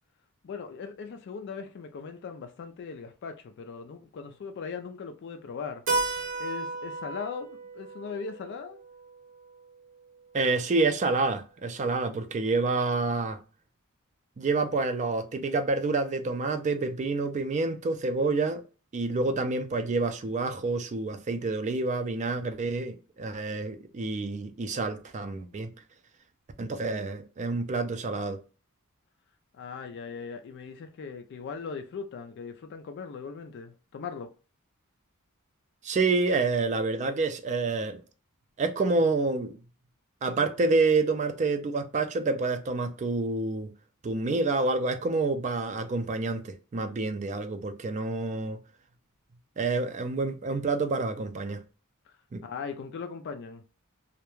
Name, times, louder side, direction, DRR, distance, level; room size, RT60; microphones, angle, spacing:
voice 1, 0.4-5.8 6.4-8.8 29.5-34.3 52.1-52.2 52.4-53.6, left 5 dB, 50° left, 0.3 m, -39 dB
Keyboard (musical), 5.9-10.3, right 3 dB, 60° right, 0.7 m, -34 dB
voice 2, 10.3-13.4 14.4-18.6 18.9-25.7 26.6-28.4 35.8-38.0 38.6-39.6 40.2-43.7 44.0-48.6 49.6-51.6 52.3-52.4, right 3 dB, 35° right, 0.3 m, -28 dB
2.3 x 2.1 x 3.0 m
head